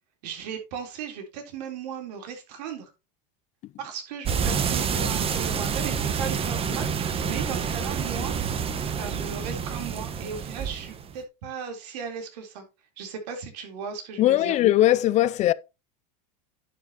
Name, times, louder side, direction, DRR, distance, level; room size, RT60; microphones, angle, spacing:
voice 1, 0.2-2.9 3.8-8.3 8.9-12.6 13.0-14.6, right 6 dB, 75° right, 3.8 m, -36 dB
sound 1, 4.2-11.2, right 6 dB, 25° right, 1.3 m, -28 dB
voice 2, 14.2-15.5, left 14 dB, 35° left, 0.4 m, -20 dB
11.0 x 7.6 x 3.0 m
supercardioid pair, 120°, 21 cm